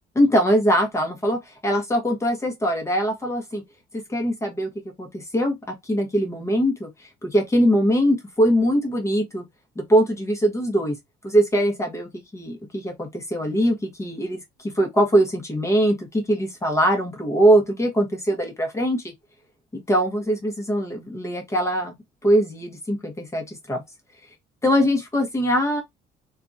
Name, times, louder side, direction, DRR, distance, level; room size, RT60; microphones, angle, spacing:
voice 1, 0.1-3.6 4.1-4.7 5.0-9.4 9.8-11.0 11.2-19.1 19.7-21.9 22.2-23.8 24.6-25.8, equal, 15° left, 0.9 m, -22 dB
2.7 x 2.4 x 2.5 m
cardioid pair, 110°, 17 cm